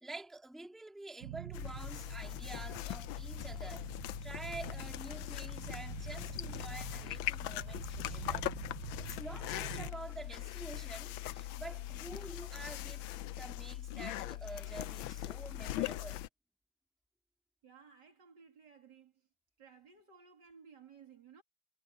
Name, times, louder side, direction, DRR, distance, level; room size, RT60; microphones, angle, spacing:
voice 1, 0.0-8.5 9.0-16.3, right 2 dB, ahead, 2.4 m, -48 dB
sound 1, 1.2-9.9, right 16 dB, 90° right, 0.7 m, -47 dB
sound 2, 1.5-16.3, left 14 dB, 90° left, 1.4 m, -41 dB
sound 3, 3.8-12.3, left 7 dB, 50° left, 2.8 m, -61 dB
voice 2, 17.6-19.2 19.6-21.4, right 6 dB, 60° right, 2.9 m, -58 dB
omnidirectional pair, 2.1 m